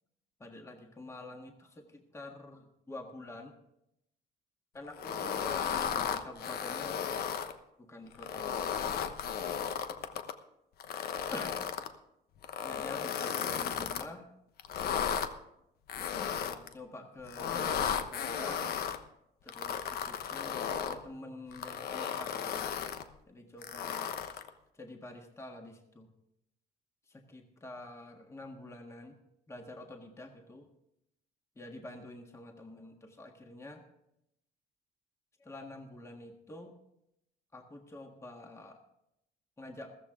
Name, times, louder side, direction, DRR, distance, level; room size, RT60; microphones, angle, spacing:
voice 1, 0.4-3.5 4.7-7.1 7.8-8.7 11.3-11.5 12.6-14.3 16.0-18.7 19.4-22.7 23.3-24.2 24.7-26.1 27.1-29.2 29.5-30.7 31.5-33.8 35.4-36.7 37.5-38.8 39.6-40.0, left 2 dB, 15° left, 3 dB, 1.6 m, -47 dB
sound 1, 5.0-7.5 8.1-10.3 10.8-11.9 12.4-14.1 14.6-15.3 15.9-16.7 17.3-19.0 19.5-21.0 21.5-23.0 23.6-24.5, left 8 dB, 70° left, 1.1 m, -34 dB
15.0 x 14.5 x 3.7 m, 0.81 s
cardioid pair, 110°, 17 cm